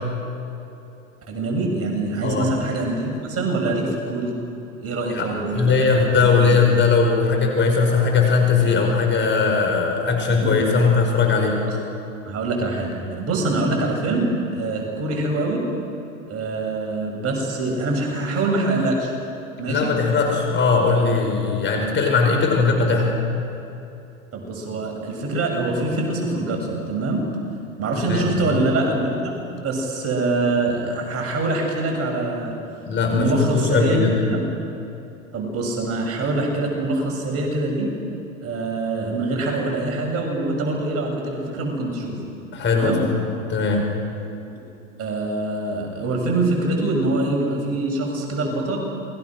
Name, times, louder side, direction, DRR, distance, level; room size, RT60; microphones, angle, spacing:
voice 1, 1.3-4.3 4.8-6.5 10.3-10.5 11.7-11.8 12.3-15.6 16.3-19.1 19.6-19.9 24.3-27.3 27.8-29.3 29.6-32.5 33.1-34.4 35.3-37.9 38.4-42.2 42.7-43.0 45.0-48.8, right 2 dB, 35° right, 0 dB, 7.2 m, -24 dB
voice 2, 2.2-2.5 5.1-11.6 19.7-23.2 27.9-28.6 32.9-34.1 42.5-43.1 43.5-43.8, left 4 dB, 25° left, 2 dB, 5.5 m, -19 dB
28.5 x 22.0 x 6.3 m, 2.8 s
hypercardioid pair, 100°, 42 cm